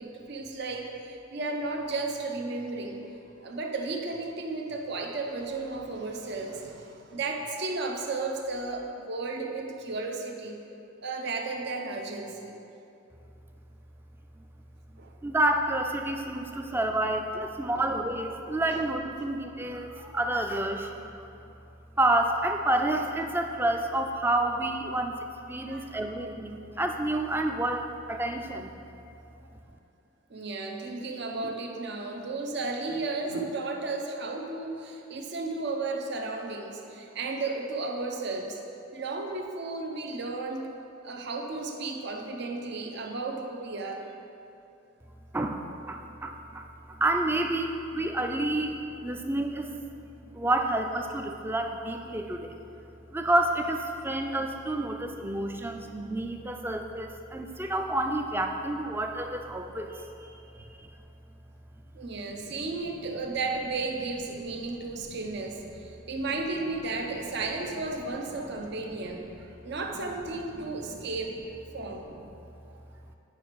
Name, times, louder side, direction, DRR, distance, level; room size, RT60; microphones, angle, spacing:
voice 1, 0.0-3.0 3.4-10.5 11.0-12.6 15.0-15.1 16.6-16.7 17.7-17.9 18.7-18.8 25.7-26.2 30.3-38.6 38.9-40.7 41.0-44.0 61.9-71.3 71.7-72.1, right 3 dB, 55° right, 2 dB, 0.8 m, -34 dB
voice 2, 15.2-21.1 22.0-25.2 25.5-28.7 45.3-49.8 50.3-52.6 53.1-60.9 65.6-65.7 69.2-69.4 70.6-70.7 72.1-72.3, right 1 dB, 10° right, 4 dB, 0.4 m, -29 dB
9.1 x 5.8 x 4.7 m, 2.8 s
head